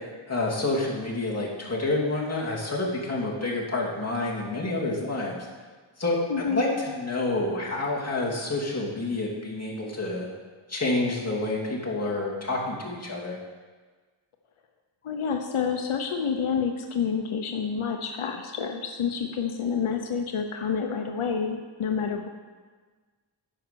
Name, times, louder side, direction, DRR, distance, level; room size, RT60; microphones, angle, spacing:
voice 1, 0.3-5.4 6.0-10.3 10.7-13.4, left 2 dB, 30° left, -4 dB, 2.6 m, -28 dB
voice 2, 6.3-6.7 15.0-22.3, left 6 dB, 90° left, 4 dB, 0.8 m, -28 dB
10.0 x 5.7 x 6.8 m, 1.4 s
wide cardioid pair, 65°, 48 cm